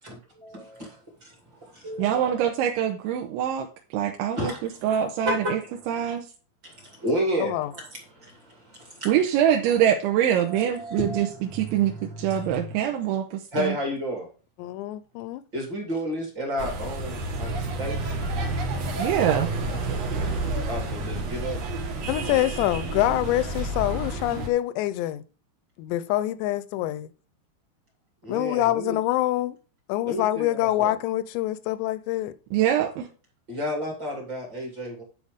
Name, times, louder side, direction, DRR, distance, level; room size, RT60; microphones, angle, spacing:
voice 1, 0.0-2.4 4.3-5.0 5.2-6.1 6.6-9.1 10.4-12.8 13.5-14.3 15.5-18.2 20.7-21.6 28.2-29.0 30.0-30.9 33.5-35.0, equal, 30° right, 2.5 m, -32 dB
voice 2, 2.0-3.7 3.9-4.5 4.8-5.6 5.9-6.2 9.1-11.3 11.5-13.2 13.6-13.7 19.0-19.5 32.5-33.1, right 10 dB, 90° right, 3.2 m, -24 dB
voice 3, 7.4-7.7 14.6-15.4 22.1-25.2 25.8-27.1 28.3-29.6 29.9-32.3, left 15 dB, 80° left, 2.7 m, -25 dB
sound 1, 16.6-24.5, right 2 dB, 60° right, 1.7 m, -30 dB
10.5 x 5.2 x 5.1 m
omnidirectional pair, 5.3 m